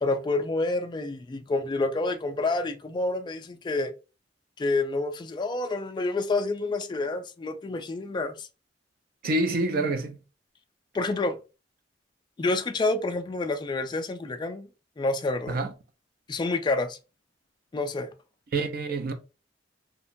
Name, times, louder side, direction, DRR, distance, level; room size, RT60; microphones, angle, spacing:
voice 1, 0.0-3.9 4.6-8.5 10.9-11.4 12.4-14.7 15.0-15.6 16.3-17.0 17.7-18.1, left 2 dB, 25° left, 0.3 m, -28 dB
voice 2, 9.2-10.2 15.5-15.7 18.5-19.1, right 2 dB, 55° right, 0.4 m, -27 dB
2.8 x 2.2 x 2.5 m
head